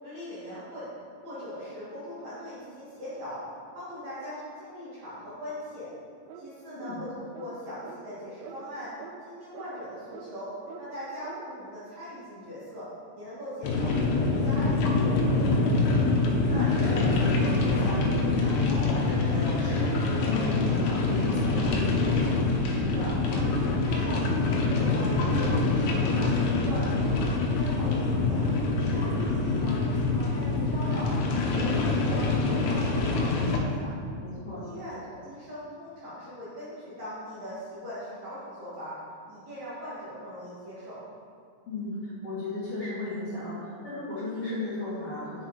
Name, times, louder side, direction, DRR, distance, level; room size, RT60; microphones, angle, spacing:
voice 1, 0.0-0.9 1.2-3.4 3.7-5.9 6.4-8.9 9.2-10.5 10.8-12.9 13.1-14.8 22.7-28.5 28.9-31.1 31.5-33.9 34.6-39.0 39.3-41.0, equal, 55° right, -10 dB, 2.3 m, -40 dB
sound 1, 6.3-6.5 6.8-7.0 7.3-7.5 7.8-8.0 8.4-8.6 9.0-9.1 9.5-9.7 10.1-10.3 10.7-10.8 11.2-11.4, right 8 dB, 85° right, 2.8 m, -44 dB
sound 2, 13.6-33.6, left 3 dB, 90° left, 3.1 m, -25 dB
voice 2, 15.4-16.0 16.5-22.5 28.8-29.2 34.2-34.6 41.7-45.5, left 2 dB, 45° left, -11 dB, 2.2 m, -35 dB
8.3 x 6.0 x 4.7 m, 2.3 s
omnidirectional pair, 4.9 m